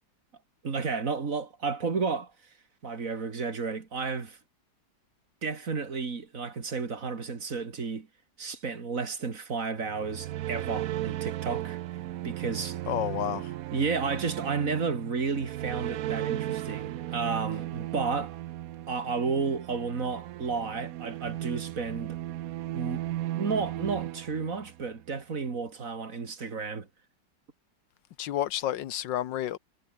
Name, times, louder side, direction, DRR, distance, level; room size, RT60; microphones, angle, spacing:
voice 1, 0.6-2.3 2.8-4.4 5.4-8.1 8.4-11.8 12.2-12.8 13.7-18.4 18.9-22.2 22.7-23.0 23.4-26.9, right 4 dB, 45° right, 2.6 m, -32 dB
sound 1, 9.8-25.0, right 14 dB, 70° right, 0.9 m, -35 dB
voice 2, 12.9-13.5 28.2-29.6, left 12 dB, 80° left, 1.6 m, -30 dB
omnidirectional pair, 1.9 m